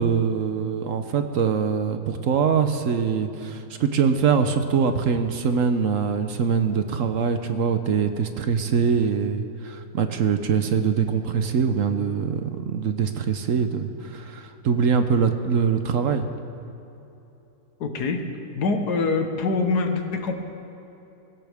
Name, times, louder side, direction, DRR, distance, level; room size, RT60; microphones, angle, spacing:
voice 1, 0.0-16.3, right 6 dB, 60° right, 8 dB, 1.1 m, -23 dB
voice 2, 17.8-18.2 18.6-20.3, left 3 dB, 85° left, 5 dB, 1.8 m, -24 dB
24.0 x 15.0 x 3.5 m, 3.0 s
omnidirectional pair, 1.7 m